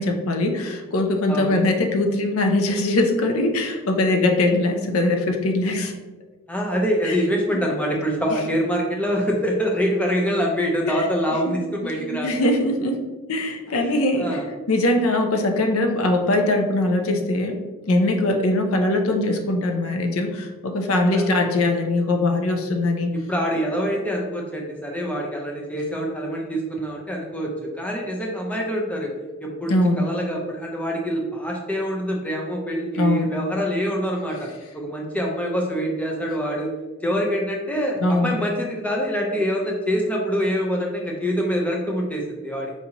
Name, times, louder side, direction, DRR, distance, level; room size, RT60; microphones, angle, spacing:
voice 1, 0.0-5.9 7.0-7.2 8.3-8.4 10.8-11.1 12.0-13.0 13.3-14.4 14.7-17.6 17.8-23.1 29.7-30.0 32.9-33.3 38.0-38.4, left 2 dB, 75° left, 4 dB, 0.5 m, -21 dB
voice 2, 6.5-12.3 13.7-14.4 21.0-21.3 23.1-29.1 29.4-34.5 34.7-36.7 37.0-42.7, equal, 5° left, -1 dB, 0.5 m, -25 dB
4.7 x 2.7 x 2.8 m, 1.2 s
head